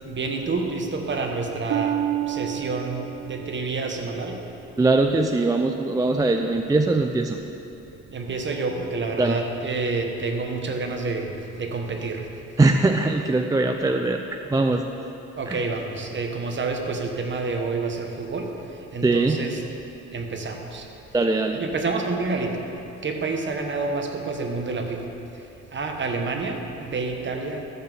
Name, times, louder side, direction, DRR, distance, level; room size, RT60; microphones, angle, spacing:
voice 1, 0.0-2.0 2.3-4.4 8.1-11.3 11.6-12.3 15.4-18.5 18.9-19.6 20.1-20.9 21.6-22.7 23.0-25.0 25.7-27.6, right 3 dB, 40° right, 3 dB, 1.2 m, -28 dB
Harp, 1.7-5.4 6.0-6.4 7.0-7.1, right 10 dB, 70° right, 0.9 m, -31 dB
voice 2, 4.8-7.4 9.2-9.4 12.6-14.8 15.5-15.6 19.0-19.4 21.1-21.6, right 2 dB, 10° right, 4 dB, 0.4 m, -21 dB
12.0 x 4.4 x 6.9 m, 3.0 s
cardioid pair, 90°, 30 cm